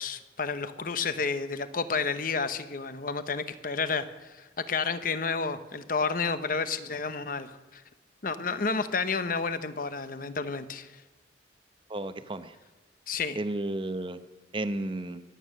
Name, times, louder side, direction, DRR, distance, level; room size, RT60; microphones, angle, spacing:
voice 1, 0.0-7.8 8.2-10.9 13.1-13.4, left 4 dB, 50° left, 12 dB, 0.9 m, -31 dB
voice 2, 11.9-12.5 13.4-14.2 14.5-15.2, right 2 dB, 25° right, 11 dB, 0.7 m, -32 dB
23.5 x 9.2 x 6.5 m, 1.2 s
head